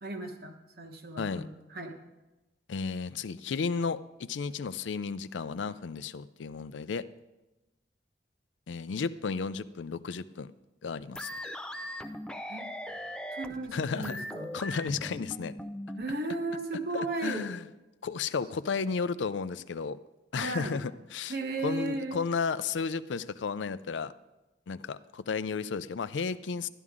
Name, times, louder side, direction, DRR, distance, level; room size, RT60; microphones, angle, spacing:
voice 1, 0.0-1.9 12.5-12.7 13.3-14.5 16.0-17.5 20.3-20.8 21.3-22.2, right 2 dB, 55° right, 4 dB, 1.2 m, -35 dB
voice 2, 1.2-1.5 2.7-7.1 8.7-10.5 10.8-11.3 13.7-14.2 14.5-15.5 16.9-17.6 18.0-20.0 20.3-21.3 21.6-24.1 24.7-26.7, left 5 dB, 90° left, 14 dB, 0.4 m, -33 dB
sound 1, 11.1-16.0, equal, 5° left, 0.4 m, -39 dB
12.0 x 11.0 x 3.7 m, 1.0 s
head